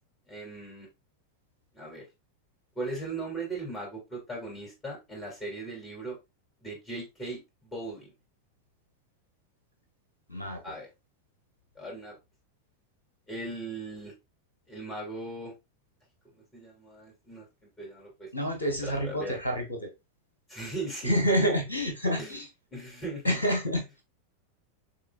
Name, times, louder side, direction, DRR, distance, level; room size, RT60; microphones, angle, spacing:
voice 1, 0.3-0.9 1.7-2.0 2.8-6.2 6.6-8.1 10.6-10.9 11.8-12.1 13.3-14.1 14.7-15.5 16.5-17.4 17.8-18.3 18.8-19.3 20.5-21.1 21.4-21.5 22.2-22.4 22.7-23.4, right 2 dB, 15° left, -2 dB, 2.8 m, -38 dB
voice 2, 10.3-10.8 18.3-19.9 21.0-22.5 23.2-24.0, equal, 75° left, 2 dB, 1.4 m, -28 dB
6.6 x 3.3 x 2.4 m, 0.23 s
figure-of-eight pair, 90°, 0 cm